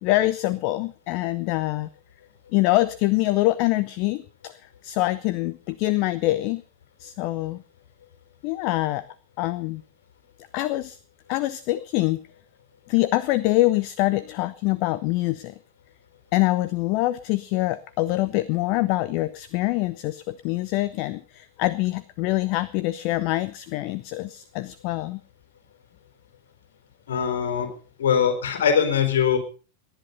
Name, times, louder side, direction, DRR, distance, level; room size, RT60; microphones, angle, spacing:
voice 1, 0.0-1.9 2.5-4.5 4.8-6.6 7.0-7.6 8.4-9.0 9.4-9.8 10.5-11.0 11.3-12.2 12.9-15.5 16.3-25.2, left 18 dB, 45° left, 17 dB, 0.7 m, -24 dB
voice 2, 27.1-27.7 28.0-29.4, left 7 dB, 60° left, 7 dB, 4.1 m, -22 dB
18.5 x 10.5 x 5.5 m, 0.38 s
figure-of-eight pair, 90°, 0 cm